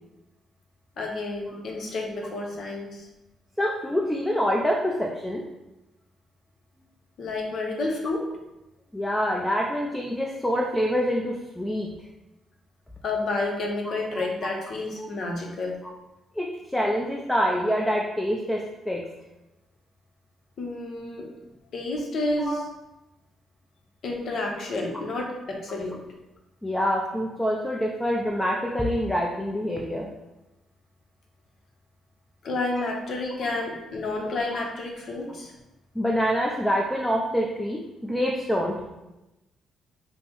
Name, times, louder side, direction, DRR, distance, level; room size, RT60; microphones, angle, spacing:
voice 1, 1.0-3.1 7.2-8.3 13.0-15.8 20.6-21.3 21.7-22.7 24.0-26.0 32.4-35.5, left 2 dB, 60° left, 1 dB, 0.7 m, -30 dB
voice 2, 3.6-5.4 8.9-11.9 16.4-16.5 16.7-19.0 22.4-22.6 26.6-30.1 34.6-34.7 36.0-38.7, equal, 5° left, -1 dB, 0.4 m, -26 dB
5.3 x 2.0 x 3.0 m, 0.99 s
cardioid pair, 90°, 0 cm